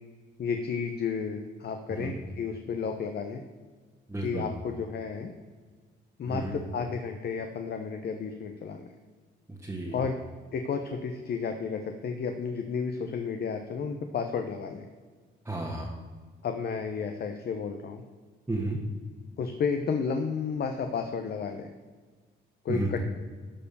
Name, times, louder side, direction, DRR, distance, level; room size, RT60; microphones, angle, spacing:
voice 1, 0.4-3.4 4.2-5.3 6.2-8.9 9.9-10.2 10.5-14.8 16.4-18.0 19.4-21.7 22.6-23.0, left 5 dB, 55° left, 6 dB, 0.9 m, -32 dB
voice 2, 4.1-4.5 6.3-6.6 9.5-10.0 15.4-15.9 18.5-18.8 22.7-23.0, right 2 dB, 10° right, -2 dB, 1.4 m, -32 dB
12.5 x 4.6 x 6.8 m, 1.5 s
cardioid pair, 90°, 20 cm